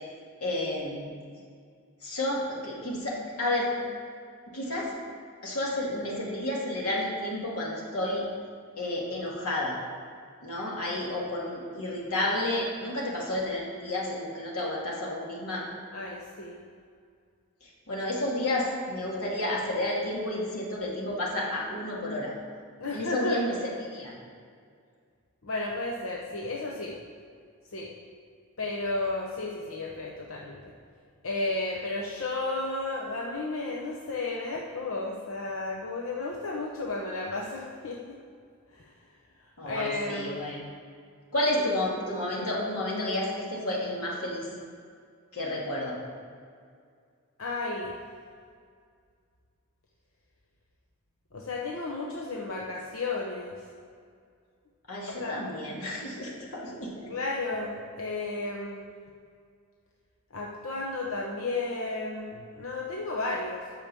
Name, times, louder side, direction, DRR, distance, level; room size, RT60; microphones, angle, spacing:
voice 1, 0.4-1.1 2.0-3.7 4.5-4.9 5.4-8.2 8.8-9.8 10.4-15.6 17.6-22.3 22.9-23.5 23.9-24.1 39.6-40.6 41.3-44.5 45.3-46.0 54.9-57.1, left 1 dB, 90° left, -4 dB, 2.4 m, -31 dB
voice 2, 15.9-16.6 22.8-23.4 25.4-26.9 27.7-27.9 28.6-30.6 31.2-38.2 38.7-38.8 39.6-40.5 41.6-41.7 47.4-47.9 51.3-53.6 55.1-55.3 57.1-58.9 60.3-63.6, left 2 dB, 70° left, -2 dB, 1.0 m, -33 dB
9.0 x 6.8 x 7.0 m, 2.2 s
head